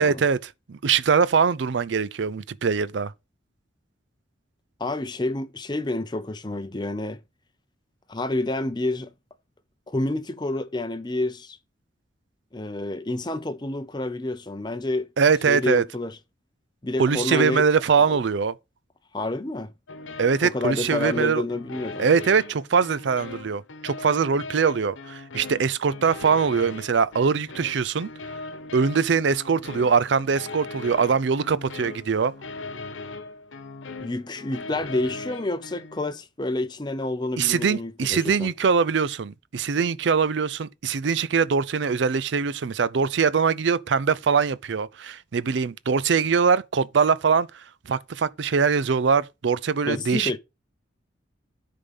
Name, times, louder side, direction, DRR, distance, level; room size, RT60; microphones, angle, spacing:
voice 1, 0.0-3.1 15.2-15.8 17.0-18.5 20.2-21.4 22.0-28.1 28.7-32.3 37.4-47.5 47.9-50.4, right 5 dB, 65° right, 0.5 m, -22 dB
voice 2, 4.8-7.2 8.1-9.1 9.9-11.6 12.5-15.1 15.4-16.2 16.8-17.7 18.0-18.2 19.1-19.7 20.4-22.0 34.0-38.5 49.9-50.4, left 2 dB, 20° left, 0.6 m, -29 dB
sound 1, 19.9-36.1, left 3 dB, 85° left, 1.0 m, -39 dB
10.0 x 3.8 x 5.4 m
head